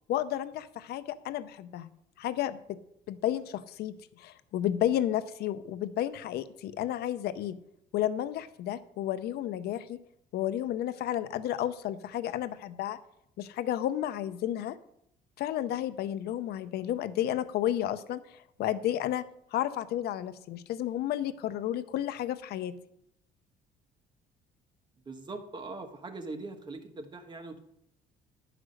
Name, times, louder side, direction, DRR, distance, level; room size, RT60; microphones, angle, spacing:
voice 1, 0.1-1.9 2.2-2.8 3.1-7.6 7.9-10.0 10.3-13.0 13.4-14.8 15.4-18.2 18.6-19.3 19.5-22.7, left 12 dB, 70° left, 14 dB, 0.6 m, -32 dB
voice 2, 25.0-27.6, right 3 dB, 25° right, 6 dB, 1.3 m, -41 dB
11.0 x 5.0 x 6.4 m, 0.75 s
cardioid pair, 110°, 17 cm